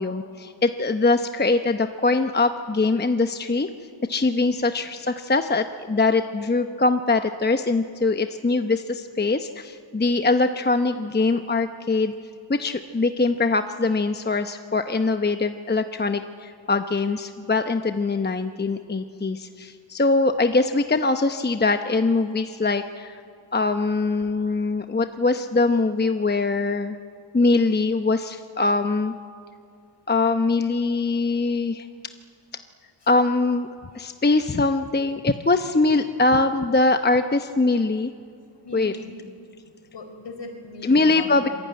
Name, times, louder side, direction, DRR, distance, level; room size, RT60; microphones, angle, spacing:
voice 1, 0.0-3.7 4.1-12.1 12.5-23.2 23.5-27.0 27.3-29.1 30.1-31.9 33.1-33.7 33.9-38.1 38.7-38.9 40.9-41.5, left 3 dB, 20° left, 8 dB, 0.8 m, -22 dB
voice 2, 33.0-33.4 33.9-34.1 35.5-35.7 36.1-36.2 36.4-36.5 37.2-37.3 38.6-39.4 39.6-41.5, left 3 dB, 60° left, 5 dB, 4.8 m, -41 dB
26.0 x 22.5 x 9.4 m, 2.4 s
wide cardioid pair, 90°, 48 cm